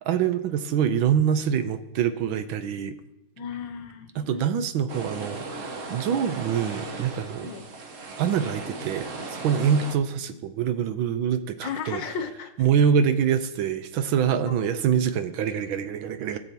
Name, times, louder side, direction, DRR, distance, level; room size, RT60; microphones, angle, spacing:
voice 1, 0.0-2.9 4.1-7.5 8.2-12.0 12.6-16.4, right 8 dB, 75° right, 10 dB, 1.4 m, -25 dB
voice 2, 3.4-4.4 7.4-7.6 11.6-12.5 14.3-14.6, left 6 dB, 65° left, 8 dB, 1.4 m, -34 dB
sound 1, 4.9-9.9, right 3 dB, 50° right, 1.0 m, -36 dB
17.0 x 7.1 x 2.9 m, 0.92 s
omnidirectional pair, 2.3 m